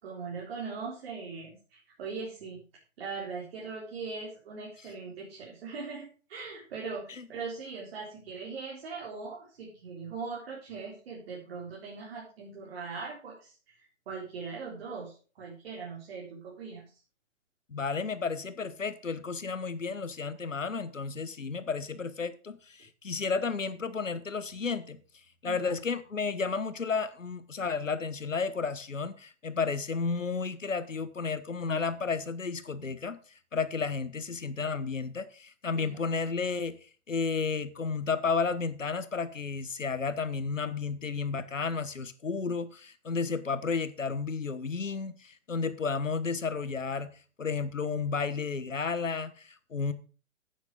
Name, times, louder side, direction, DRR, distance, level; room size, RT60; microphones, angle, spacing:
voice 1, 0.0-2.6 3.0-17.0 25.4-25.7 35.7-36.2, right 4 dB, 50° right, 4.1 m, -40 dB
voice 2, 17.7-25.0 25.4-33.2 33.5-36.7 37.1-47.1 47.4-49.9, left 5 dB, 80° left, 1.3 m, -32 dB
9.5 x 9.2 x 5.1 m
figure-of-eight pair, 125°, 37 cm